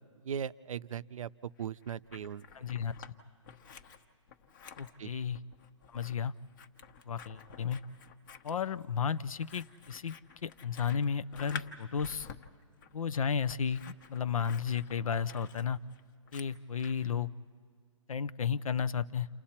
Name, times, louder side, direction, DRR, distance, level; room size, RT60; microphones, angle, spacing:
voice 1, 0.2-2.5 5.0-5.1, right 8 dB, 75° right, 16 dB, 0.6 m, -39 dB
Scissors, 1.6-3.1 3.4-17.1, left 7 dB, 40° left, 1.1 m, -50 dB
voice 2, 2.5-2.9 4.8-5.4 5.9-6.3 7.0-7.8 8.4-12.3 12.9-15.8 16.3-17.3 18.1-19.3, left 7 dB, 80° left, 15 dB, 0.7 m, -33 dB
29.5 x 28.5 x 4.3 m, 2.1 s
hypercardioid pair, 160°, 17 cm